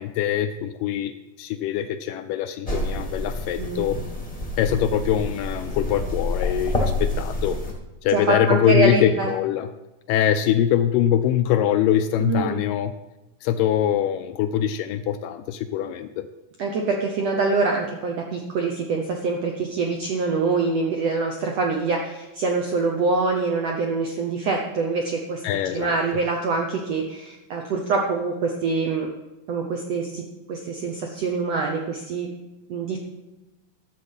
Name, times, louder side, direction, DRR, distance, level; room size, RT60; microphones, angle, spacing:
voice 1, 0.0-4.0 4.6-7.6 8.0-9.7 10.1-12.9 13.4-16.3 25.4-26.0, left 10 dB, 80° left, 9 dB, 2.0 m, -23 dB
sound 1, 2.7-7.7, left 2 dB, 20° left, 1.0 m, -28 dB
voice 2, 3.6-3.9 8.1-9.3 12.2-12.6 16.6-25.4 25.7-29.1 29.5-30.2 30.5-32.3 32.7-33.0, right 4 dB, 75° right, 1 dB, 1.5 m, -25 dB
12.0 x 7.4 x 5.5 m, 1.0 s
omnidirectional pair, 4.2 m